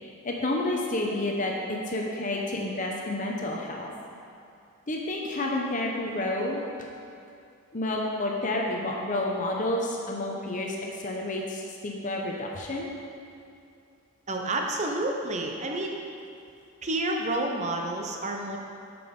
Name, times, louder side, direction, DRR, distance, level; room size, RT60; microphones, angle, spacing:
voice 1, 0.2-3.9 4.9-6.6 7.7-12.9, left 1 dB, 35° left, -1 dB, 0.8 m, -30 dB
voice 2, 14.3-16.0 16.8-18.6, right 2 dB, 35° right, 2 dB, 0.8 m, -29 dB
8.2 x 6.1 x 5.3 m, 2.6 s
head